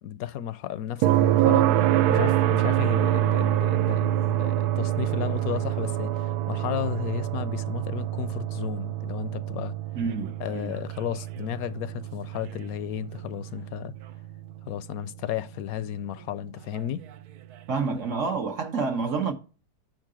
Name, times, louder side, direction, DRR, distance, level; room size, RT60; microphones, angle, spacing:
voice 1, 0.0-9.8 10.4-13.9 14.7-17.0, left 11 dB, 75° left, 1.0 m, -33 dB
sound 1, 1.0-14.9 17.1-17.2, right 13 dB, 80° right, 1.1 m, -26 dB
voice 2, 9.9-10.7 17.7-19.3, right 4 dB, 55° right, 1.2 m, -28 dB
6.6 x 6.6 x 4.9 m
omnidirectional pair, 1.6 m